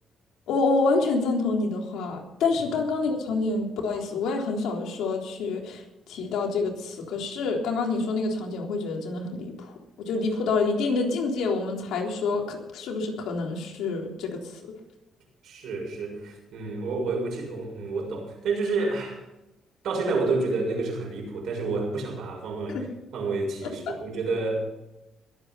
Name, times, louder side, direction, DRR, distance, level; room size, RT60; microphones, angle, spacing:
voice 1, 0.5-9.7 10.0-14.6 22.7-22.8 23.9-24.0, left 3 dB, 85° left, 1 dB, 3.6 m, -27 dB
voice 2, 15.4-19.2 19.8-22.9 23.1-24.6, right 3 dB, 75° right, 1 dB, 6.7 m, -29 dB
21.5 x 8.9 x 5.7 m, 0.95 s
cardioid pair, 90°, 0 cm